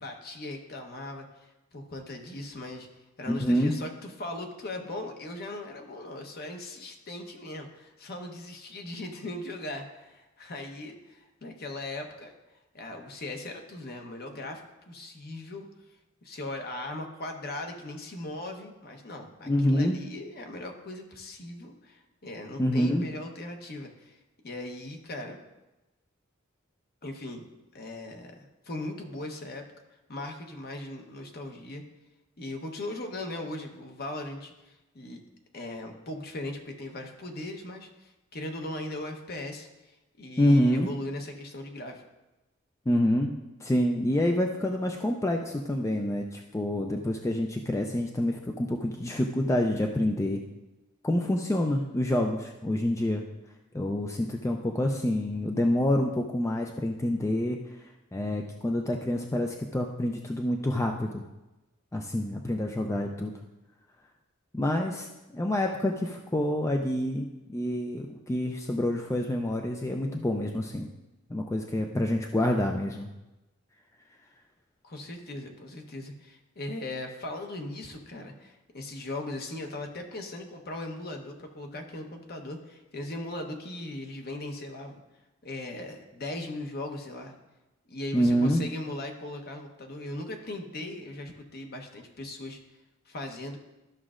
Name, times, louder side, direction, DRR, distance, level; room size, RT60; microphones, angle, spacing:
voice 1, 0.0-2.9 3.2-12.4 12.7-14.6 14.9-15.6 16.2-24.2 24.4-25.4 27.0-27.5 27.7-29.7 30.1-31.8 32.4-35.2 35.5-42.0 74.8-85.0 85.4-87.4 87.9-92.6 93.1-93.6, left 1 dB, 50° left, 4 dB, 1.0 m, -39 dB
voice 2, 3.3-3.8 19.5-20.0 22.6-23.0 40.4-40.9 42.9-43.3 43.6-50.4 51.0-53.2 53.7-57.6 58.1-61.2 61.9-63.3 64.5-65.1 65.3-70.9 71.3-73.1 88.1-88.6, left 1 dB, 15° left, 2 dB, 0.4 m, -27 dB
13.0 x 6.1 x 2.5 m, 1.0 s
head